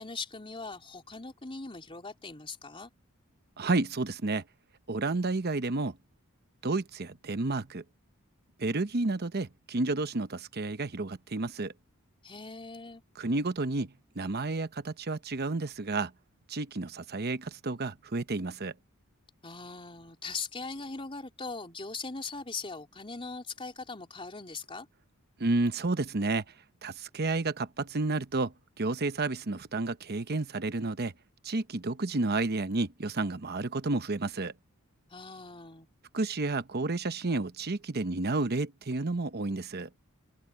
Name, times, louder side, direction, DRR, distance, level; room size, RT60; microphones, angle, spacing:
voice 1, 0.0-2.9 12.2-13.0 19.4-24.9 35.1-35.9, left 4 dB, 25° left, 3.9 m, -40 dB
voice 2, 3.6-4.4 4.9-6.0 6.6-7.8 8.6-11.7 13.2-16.1 16.5-18.7 25.4-26.4 26.8-31.1 31.4-34.5 36.1-39.9, right 3 dB, 45° right, 0.9 m, -31 dB
open air
head